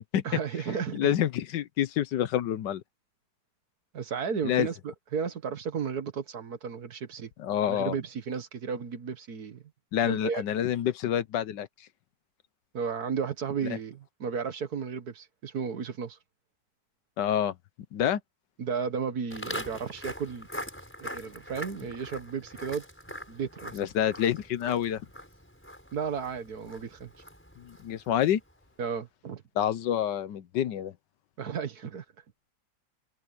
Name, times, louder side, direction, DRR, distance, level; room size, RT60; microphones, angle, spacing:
voice 1, 0.2-1.1 3.9-7.3 7.7-9.6 10.0-10.4 12.7-16.2 18.6-20.5 21.0-22.8 23.3-23.8 25.9-27.1 28.8-29.4 31.4-32.0, right 6 dB, 55° right, 1.8 m, -34 dB
voice 2, 0.9-2.8 4.4-4.7 7.4-7.9 9.9-11.7 17.2-17.5 17.9-18.2 23.7-25.0 27.6-28.4 29.6-30.9, left 10 dB, 75° left, 1.4 m, -27 dB
Walk footsteps, 19.3-28.5, equal, 5° left, 5.7 m, -43 dB
omnidirectional pair, 2.0 m